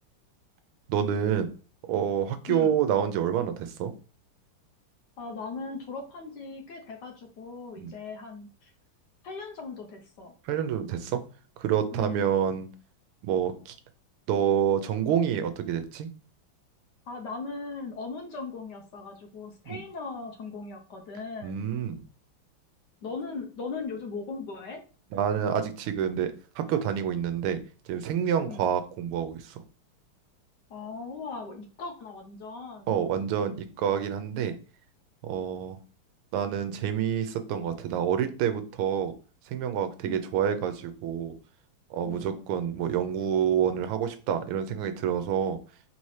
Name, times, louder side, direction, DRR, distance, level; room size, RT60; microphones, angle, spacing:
voice 1, 0.9-1.5 1.9-3.9 7.8-7.9 10.4-11.2 11.6-12.7 13.2-13.7 14.3-16.1 19.7-19.8 21.4-22.0 25.1-27.6 27.9-29.6 32.9-34.5 35.2-35.8 36.3-39.1 39.5-41.3 41.9-45.6, right 8 dB, 90° right, 9 dB, 1.6 m, -28 dB
voice 2, 5.2-8.7 9.2-10.3 11.9-12.3 17.1-21.6 23.0-24.8 28.4-28.6 30.7-33.0 40.0-40.3 42.0-42.4, left 4 dB, 65° left, 3 dB, 1.2 m, -38 dB
4.2 x 4.1 x 3.1 m, 0.36 s
omnidirectional pair, 2.4 m